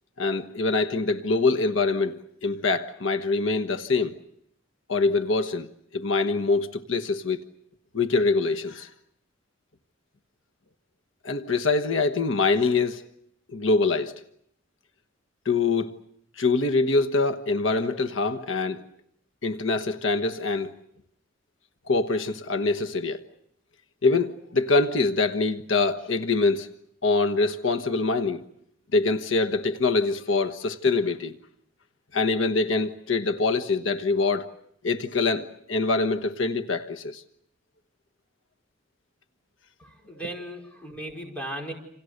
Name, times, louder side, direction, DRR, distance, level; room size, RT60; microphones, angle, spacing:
voice 1, 0.2-4.2 4.9-5.7 5.9-7.4 7.9-8.9 11.2-13.0 13.5-14.1 15.4-15.9 16.4-18.8 19.4-20.7 21.9-23.2 24.0-26.7 27.0-28.4 28.9-31.3 32.1-34.5 34.8-37.2, left 3 dB, 85° left, 1.3 m, -24 dB
voice 2, 39.8-41.7, right 1 dB, 5° left, 5.2 m, -37 dB
28.5 x 27.5 x 6.6 m
head